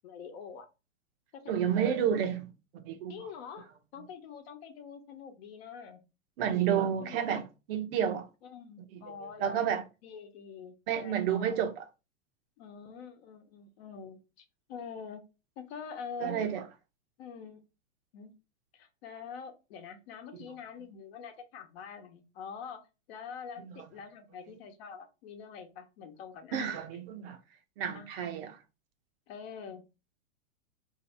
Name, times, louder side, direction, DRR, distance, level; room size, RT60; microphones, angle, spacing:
voice 1, 0.0-0.7 1.3-1.6 3.1-6.0 7.0-7.2 8.4-9.6 10.0-11.6 12.6-15.2 15.6-16.5 17.2-17.6 18.1-18.3 18.7-22.8 23.1-26.8 27.9-28.1 29.3-29.9, left 6 dB, 50° left, 1.0 m, -45 dB
voice 2, 1.5-3.1 6.4-8.3 9.4-9.8 10.9-11.8 16.2-16.6 23.6-23.7 26.5-27.4 27.8-28.6, right 8 dB, 45° right, 0.7 m, -30 dB
2.8 x 2.6 x 4.2 m
hypercardioid pair, 125°, 40 cm